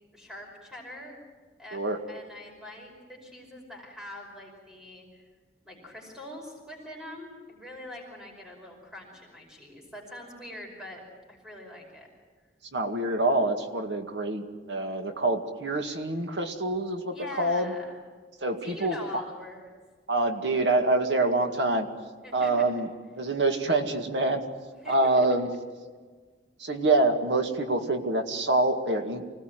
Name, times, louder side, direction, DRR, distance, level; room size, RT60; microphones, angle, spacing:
voice 1, 0.1-1.2 1.6-1.8 2.1-5.3 5.6-11.0 11.3-12.1 17.1-18.0 18.6-19.7 22.2-22.5 24.8-25.3, left 1 dB, 5° right, 0 dB, 5.3 m, -43 dB
voice 2, 12.7-17.7 18.4-19.0 20.1-21.9 22.3-22.9 23.2-24.4 24.9-25.5 26.6-29.3, right 2 dB, 80° right, 5 dB, 2.1 m, -26 dB
25.5 x 18.5 x 9.3 m, 1.5 s
head